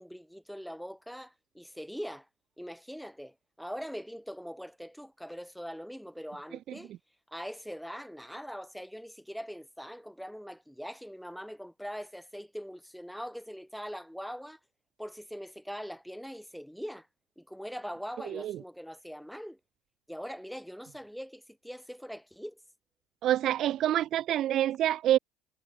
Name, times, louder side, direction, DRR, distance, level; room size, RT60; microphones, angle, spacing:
voice 1, 0.0-2.3 2.6-6.9 7.3-14.6 15.0-17.1 17.4-19.6 20.1-22.6, equal, ahead, 5.5 m, -42 dB
voice 2, 23.2-25.2, right 12 dB, 55° right, 0.4 m, -26 dB
supercardioid pair, 80°, 0 cm